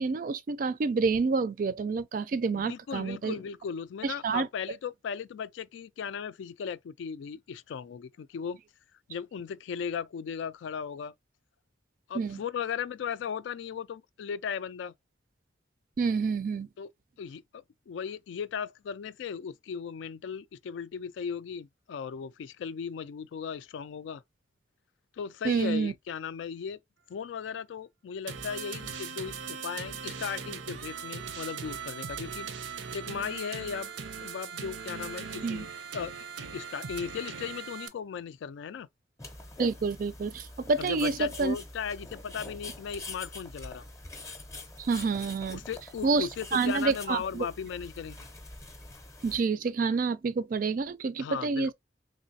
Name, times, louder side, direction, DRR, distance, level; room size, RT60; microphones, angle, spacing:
voice 1, 0.0-3.3 4.0-4.5 12.1-12.4 16.0-16.7 25.4-25.9 35.4-35.6 39.6-41.6 44.8-45.6 46.0-47.4 49.2-51.7, right 4 dB, 45° right, 0.3 m, -28 dB
voice 2, 2.5-8.6 9.1-11.1 12.1-14.9 16.8-16.9 17.2-24.2 25.1-26.8 27.1-32.5 32.8-33.9 34.2-35.7 35.9-36.1 36.5-38.9 40.8-43.9 45.5-48.3 51.2-51.7, left 7 dB, 80° left, 0.3 m, -37 dB
sound 1, 28.3-37.9, right 6 dB, 90° right, 0.6 m, -39 dB
sound 2, 39.2-49.4, left 2 dB, 15° left, 0.6 m, -45 dB
3.2 x 3.0 x 2.6 m
head